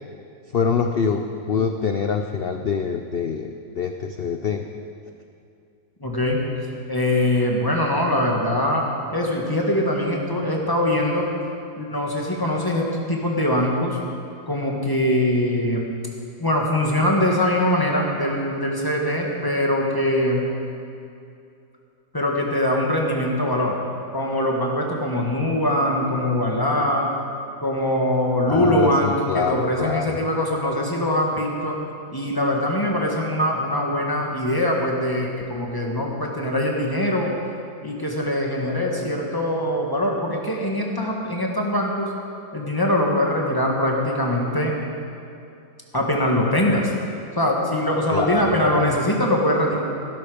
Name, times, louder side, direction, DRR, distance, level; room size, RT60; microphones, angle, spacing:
voice 1, 0.5-4.6 28.5-30.2 48.1-49.0, left 5 dB, 70° left, 5 dB, 0.5 m, -25 dB
voice 2, 6.0-6.4 6.9-11.3 11.8-12.8 13.1-14.0 14.5-15.9 16.4-20.5 22.1-23.8 24.1-27.1 27.6-31.8 32.1-37.3 37.8-42.1 42.5-44.7 45.9-46.9 47.4-49.8, left 1 dB, 15° left, -1 dB, 1.7 m, -22 dB
17.5 x 11.5 x 5.1 m, 2.6 s
omnidirectional pair, 1.8 m